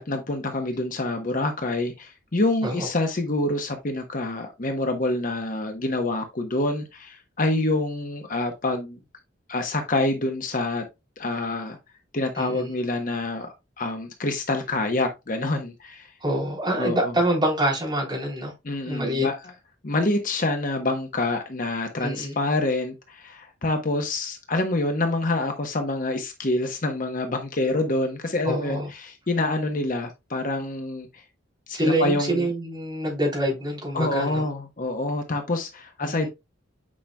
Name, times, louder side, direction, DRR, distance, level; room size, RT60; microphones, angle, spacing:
voice 1, 0.0-9.0 9.5-10.8 11.2-11.8 12.1-16.1 16.8-17.1 18.6-19.3 19.8-31.1 31.7-32.5 33.9-36.3, left 2 dB, 45° left, 1.0 m, -26 dB
voice 2, 12.3-12.7 16.2-18.5 18.9-19.3 22.0-22.4 28.4-28.9 31.7-34.5 36.0-36.3, right 1 dB, 25° right, 3.4 m, -26 dB
8.6 x 5.1 x 2.2 m
head